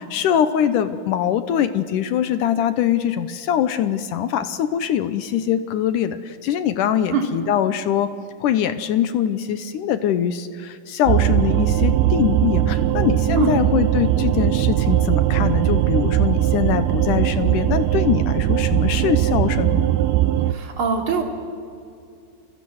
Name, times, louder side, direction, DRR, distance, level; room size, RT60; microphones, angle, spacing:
voice 1, 0.0-8.1 8.4-19.8, left 9 dB, 75° left, 11 dB, 2.1 m, -22 dB
sound 1, 11.1-20.5, right 12 dB, 85° right, 2.8 m, -19 dB
voice 2, 20.5-21.2, right 6 dB, 35° right, 1 dB, 3.7 m, -22 dB
30.0 x 22.5 x 7.9 m, 2.4 s
omnidirectional pair, 4.4 m